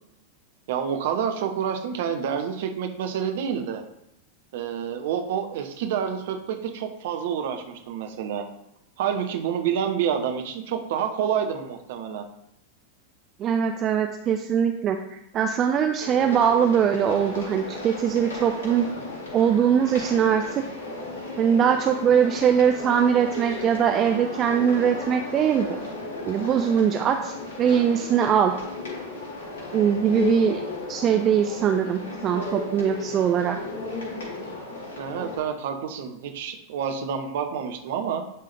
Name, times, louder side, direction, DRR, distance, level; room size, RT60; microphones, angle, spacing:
voice 1, 0.7-3.8 4.5-8.5 9.0-12.2 35.0-38.3, right 8 dB, 55° right, 5 dB, 0.9 m, -28 dB
voice 2, 13.4-18.9 19.3-20.6 21.4-25.8 26.2-28.5 29.7-30.6 30.9-33.6, right 8 dB, 30° right, 6 dB, 0.5 m, -22 dB
sound 1, 16.0-35.4, left 3 dB, 60° left, 2.4 m, -35 dB
11.0 x 3.7 x 3.4 m, 0.79 s
figure-of-eight pair, 90°, 0 cm